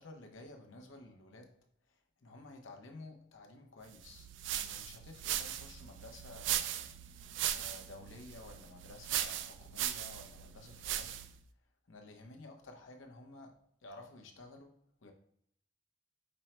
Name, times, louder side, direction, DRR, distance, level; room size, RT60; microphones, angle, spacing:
voice 1, 0.0-1.6 2.2-6.9 7.4-11.1 11.9-13.5 13.8-14.8 15.0-15.1, left 2 dB, 85° left, 0.8 m, -53 dB
sound 1, 4.0-11.4, right 11 dB, 70° right, 0.3 m, -38 dB
5.3 x 2.1 x 4.3 m
head